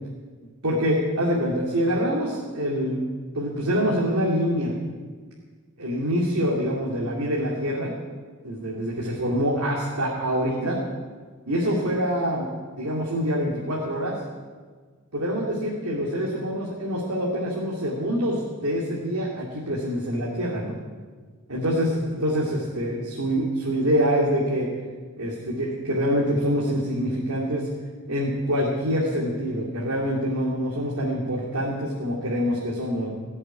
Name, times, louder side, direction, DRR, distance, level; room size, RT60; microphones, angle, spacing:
voice 1, 0.6-3.0 3.3-4.7 5.8-7.9 8.4-10.8 11.5-12.5 12.8-14.1 15.1-20.8 21.5-24.7 25.2-27.7 28.1-33.1, equal, 90° right, -4 dB, 2.9 m, -25 dB
19.0 x 7.9 x 9.6 m, 1.5 s
head